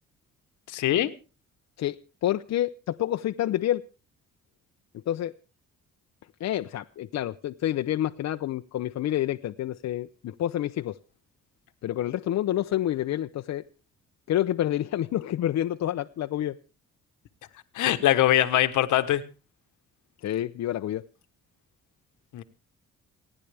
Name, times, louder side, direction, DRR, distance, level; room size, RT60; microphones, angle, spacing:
voice 1, 0.7-1.1 17.7-19.2 22.3-22.4, left 13 dB, 80° left, 1.2 m, -22 dB
voice 2, 2.2-3.8 5.1-5.3 6.4-11.0 11.8-13.6 14.3-16.6 20.2-21.0, left 12 dB, 60° left, 0.7 m, -28 dB
29.0 x 10.0 x 3.4 m
cardioid pair, 90°, 30 cm